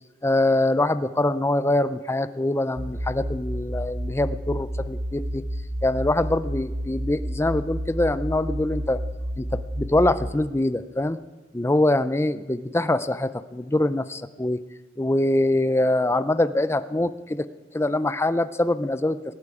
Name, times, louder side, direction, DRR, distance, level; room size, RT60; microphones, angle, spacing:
voice 1, 0.2-5.4 5.8-9.0 9.4-11.2 11.5-14.6 15.0-17.5 17.7-19.2, left 1 dB, 15° left, 13 dB, 0.5 m, -24 dB
sound 1, 2.8-10.3, equal, 75° right, 2.7 m, -31 dB
18.5 x 15.5 x 4.9 m, 1.2 s
head